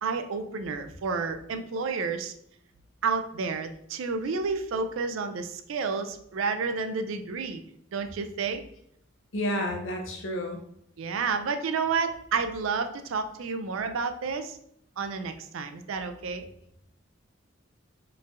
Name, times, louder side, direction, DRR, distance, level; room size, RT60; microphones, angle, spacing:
voice 1, 0.0-2.3 3.0-7.6 7.9-8.6 11.0-14.6 15.0-16.5, right 5 dB, 85° right, 8 dB, 0.4 m, -30 dB
voice 2, 9.3-10.6, left 1 dB, 75° left, 3 dB, 0.8 m, -30 dB
4.4 x 3.2 x 2.4 m, 0.72 s
head